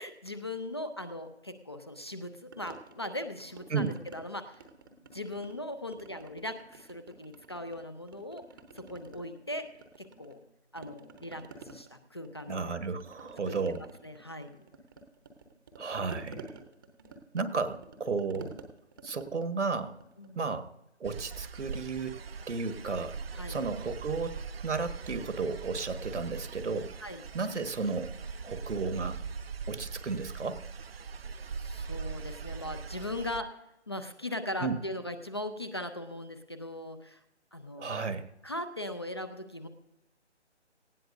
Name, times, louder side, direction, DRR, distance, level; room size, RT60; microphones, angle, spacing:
voice 1, 0.0-4.6 5.1-8.4 8.7-9.7 10.0-10.4 10.7-13.0 13.5-13.6 14.0-14.6 20.2-20.4 23.3-23.6 27.0-27.2 31.5-33.6 33.9-37.2 37.5-38.0 38.4-39.7, left 1 dB, 25° left, 10 dB, 0.5 m, -39 dB
sound 1, 2.5-4.2 4.5-5.6 5.9-7.8 8.1-10.5 10.8-20.6, right 3 dB, 20° right, 0.8 m, -51 dB
voice 2, 12.5-13.8 15.8-16.5 17.3-18.6 19.0-20.0 20.3-20.7 21.0-22.2 22.5-23.2 23.5-26.9 27.3-28.1 28.4-29.2 29.7-30.6 34.6-34.8 37.8-38.3, right 4 dB, 75° right, 10 dB, 1.4 m, -33 dB
sound 2, 21.0-33.4, right 5 dB, 60° right, 0.6 m, -41 dB
18.5 x 15.5 x 2.6 m, 0.90 s
figure-of-eight pair, 155°, 35 cm